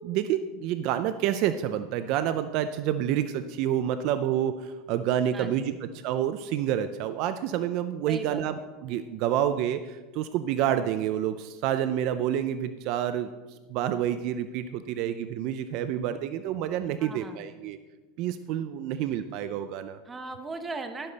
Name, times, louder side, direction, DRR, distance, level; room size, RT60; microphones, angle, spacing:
voice 1, 0.0-13.3 13.7-17.8 18.2-20.0, right 10 dB, 50° right, 11 dB, 0.5 m, -28 dB
voice 2, 5.3-5.7 8.1-8.4 17.0-17.4 20.1-21.1, right 3 dB, 15° right, 6 dB, 1.0 m, -38 dB
12.0 x 11.5 x 4.1 m, 1.3 s
supercardioid pair, 155°, 0 cm